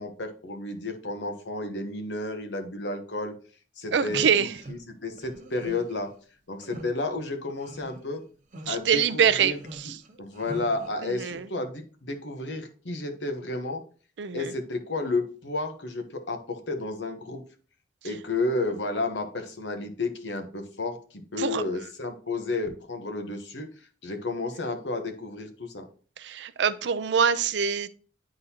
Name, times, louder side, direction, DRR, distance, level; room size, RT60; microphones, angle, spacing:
voice 1, 0.0-3.3 3.8-6.1 6.5-8.2 8.7-9.6 9.8-9.9 10.2-13.8 14.3-17.4 18.0-23.7 24.0-25.8, left 2 dB, 75° left, 6 dB, 1.0 m, -32 dB
voice 2, 3.9-4.5 8.7-9.5 9.8-9.9 11.0-11.5 14.2-14.5 21.4-21.6 26.2-27.9, right 7 dB, 75° right, 13 dB, 0.5 m, -24 dB
sound 1, 4.0-4.8 5.2-6.0 6.6-6.9 7.5-8.2 8.5-8.7 9.4-10.9, right 1 dB, 45° right, 0.9 m, -42 dB
9.9 x 3.8 x 2.8 m, 0.41 s
head